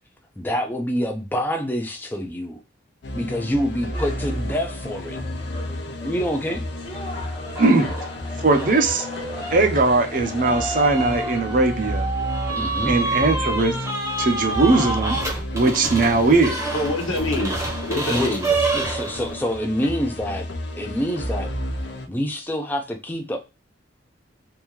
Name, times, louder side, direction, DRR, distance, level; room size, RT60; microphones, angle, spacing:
voice 1, 0.4-2.6 3.1-5.2 6.0-6.6 12.6-12.9 18.1-18.3 18.7-20.5 20.7-21.5 22.1-23.4, equal, 10° left, 0.4 m, -26 dB
sound 1, 3.0-22.1, left 1 dB, 65° left, 0.7 m, -32 dB
sound 2, 3.9-11.2, left 1 dB, 25° left, 0.9 m, -38 dB
sound 3, 7.5-8.1 8.5-19.4, right 2 dB, 15° right, 0.8 m, -28 dB
voice 2, 7.6-7.9 8.4-9.1 9.5-12.1 12.9-13.7 14.2-16.6, right 3 dB, 45° right, 0.6 m, -19 dB
voice 3, 16.7-18.8, left 1 dB, 90° left, 1.1 m, -27 dB
3.5 x 2.7 x 3.0 m
head